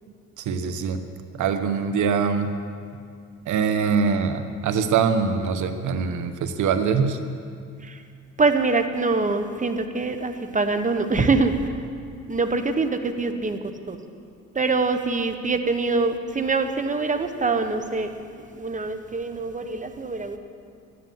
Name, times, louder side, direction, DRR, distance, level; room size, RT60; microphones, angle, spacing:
voice 1, 0.4-1.0 1.3-2.5 3.5-7.2, right 6 dB, 75° right, 8 dB, 1.3 m, -23 dB
voice 2, 8.4-11.5 12.3-13.6 13.9-14.0 14.5-18.1 18.5-20.4, right 3 dB, 25° right, 7 dB, 1.3 m, -24 dB
13.0 x 10.0 x 9.4 m, 2.3 s
cardioid pair, 90°, 30 cm